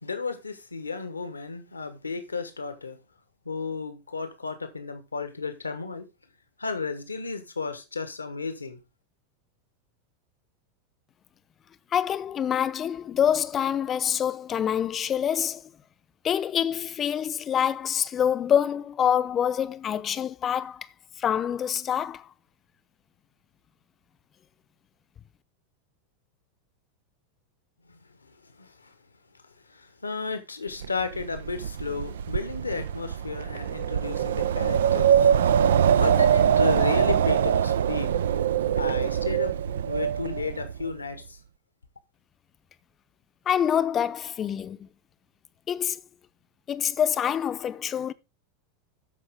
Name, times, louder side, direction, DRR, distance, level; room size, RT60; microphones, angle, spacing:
voice 1, 0.0-3.0 3.4-6.1 6.6-8.8 27.9-28.0 28.3-28.9 29.7-35.3 35.9-38.1 38.8-39.6 39.9-41.4, left 4 dB, 90° left, 1.2 m, -33 dB
voice 2, 11.9-15.6 16.2-20.9 21.2-22.3 43.5-44.9 45.7-46.0 46.7-48.1, left 9 dB, 30° left, 0.7 m, -26 dB
Wind, 30.8-40.9, right 8 dB, 70° right, 0.4 m, -23 dB
13.5 x 5.0 x 3.6 m
figure-of-eight pair, 85°, 0 cm